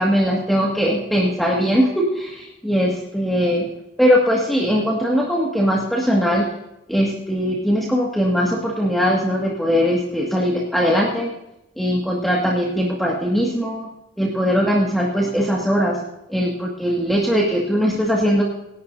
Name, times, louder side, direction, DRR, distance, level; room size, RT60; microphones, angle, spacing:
voice 1, 0.0-3.7 4.0-6.5 6.9-11.3 11.8-13.9 14.2-16.0 16.3-18.4, equal, ahead, -4 dB, 2.0 m, -20 dB
27.0 x 11.5 x 2.7 m, 0.87 s
head